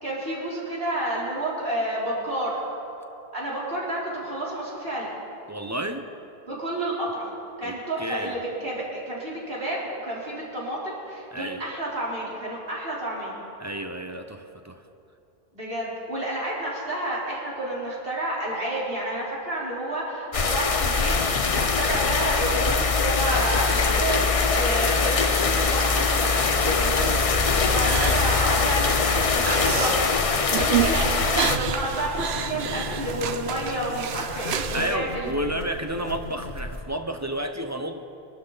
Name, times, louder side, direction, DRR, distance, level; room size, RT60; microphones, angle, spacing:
voice 1, 0.0-2.6 3.3-5.1 6.5-7.3 7.6-13.4 15.5-30.0 30.6-35.5, right 1 dB, 70° right, -6 dB, 4.0 m, -30 dB
voice 2, 5.5-6.1 7.6-7.7 8.0-8.3 11.3-11.6 13.6-14.8 34.7-38.0, right 1 dB, 20° right, 6 dB, 0.7 m, -31 dB
sound 1, 20.3-31.6, left 4 dB, 40° left, 0.7 m, -22 dB
sound 2, 21.1-36.8, left 2 dB, 85° left, 1.8 m, -36 dB
sound 3, 27.5-35.0, right 9 dB, 85° right, 1.0 m, -30 dB
24.5 x 12.0 x 4.0 m, 2.8 s
omnidirectional pair, 1.0 m